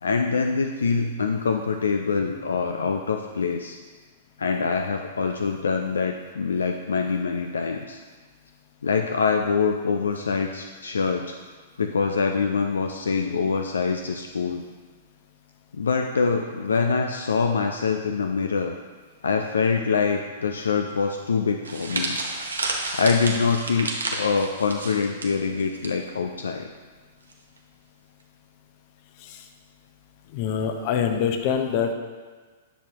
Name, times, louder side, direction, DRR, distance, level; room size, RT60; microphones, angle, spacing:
voice 1, 0.0-3.8 4.4-8.0 8.8-11.3 11.8-14.6 15.7-18.7 19.2-22.2 22.9-26.7, left 5 dB, 80° left, 4 dB, 0.4 m, -24 dB
sound 1, 21.6-25.9 26.2-26.4 27.3-27.6, right 2 dB, 85° right, 1.1 m, -31 dB
voice 2, 30.3-31.9, left 7 dB, 50° left, 6 dB, 0.8 m, -24 dB
10.0 x 6.2 x 2.9 m, 1.4 s
figure-of-eight pair, 110°, 0 cm